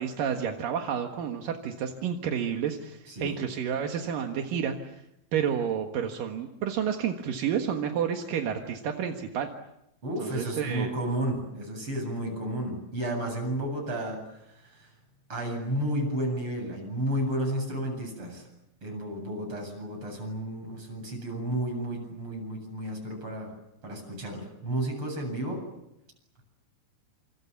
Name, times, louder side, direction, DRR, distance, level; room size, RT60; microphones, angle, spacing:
voice 1, 0.0-4.8 5.3-9.5 10.2-10.9, right 8 dB, 60° right, 3 dB, 2.5 m, -30 dB
voice 2, 10.0-14.2 14.6-14.9 15.3-18.4 18.8-23.5 23.8-25.6, right 1 dB, 25° right, 3 dB, 8.6 m, -32 dB
28.0 x 28.0 x 7.3 m, 0.83 s
omnidirectional pair, 5.7 m